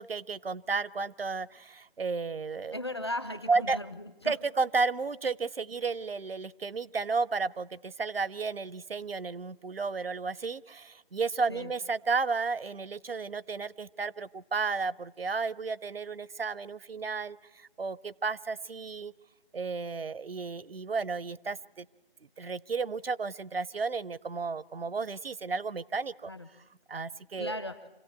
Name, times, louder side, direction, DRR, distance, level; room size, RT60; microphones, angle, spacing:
voice 1, 0.0-2.8 3.5-3.8 4.2-19.1 19.5-21.9 22.4-26.3 26.9-27.6, right 4 dB, 70° right, 21 dB, 0.7 m, -33 dB
voice 2, 2.7-4.3 11.5-11.7 26.3-26.5 27.4-27.8, left 1 dB, 25° left, 10 dB, 0.8 m, -37 dB
26.5 x 16.0 x 8.4 m, 1.1 s
figure-of-eight pair, 160°, 31 cm